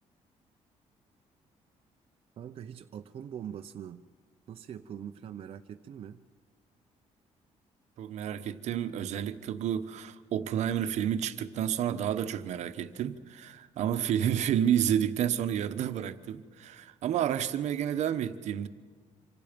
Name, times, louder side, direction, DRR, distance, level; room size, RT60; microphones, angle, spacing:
voice 1, 2.4-4.0 4.5-6.2, right 9 dB, 50° right, 0.7 m, -42 dB
voice 2, 8.0-18.7, right 9 dB, 70° right, 1.1 m, -30 dB
27.0 x 25.5 x 5.2 m
cardioid pair, 135°, 12 cm